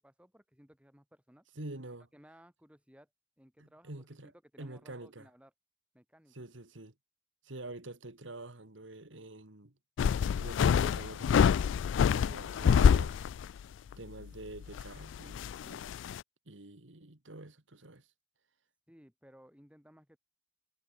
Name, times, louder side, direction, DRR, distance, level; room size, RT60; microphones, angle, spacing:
voice 1, 0.0-1.5 2.1-3.1 3.4-3.9 4.2-5.5 5.9-6.3 18.9-20.2, equal, 5° right, 7.0 m, -60 dB
voice 2, 1.6-2.1 3.6-4.3 4.6-5.3 6.3-6.9 7.4-9.7 10.4-11.5 12.1-13.2 14.0-15.8 16.5-18.1, right 2 dB, 80° right, 2.2 m, -47 dB
sound 1, 10.0-13.6 13.9-14.0 14.6-16.2, left 7 dB, 75° left, 0.3 m, -26 dB
head